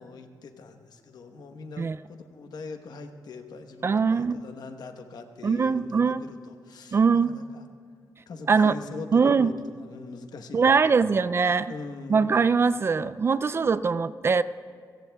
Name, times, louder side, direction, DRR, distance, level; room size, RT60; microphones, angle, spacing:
voice 1, 0.0-7.6 8.3-10.8 11.7-12.3, left 4 dB, 70° left, 6 dB, 1.1 m, -42 dB
voice 2, 3.8-4.4 5.4-6.2 6.9-7.3 8.5-8.8 9.1-9.5 10.5-11.7 12.1-14.4, right 5 dB, 35° right, 14 dB, 0.3 m, -22 dB
29.0 x 17.0 x 2.3 m, 2.1 s
wide cardioid pair, 140°, 7 cm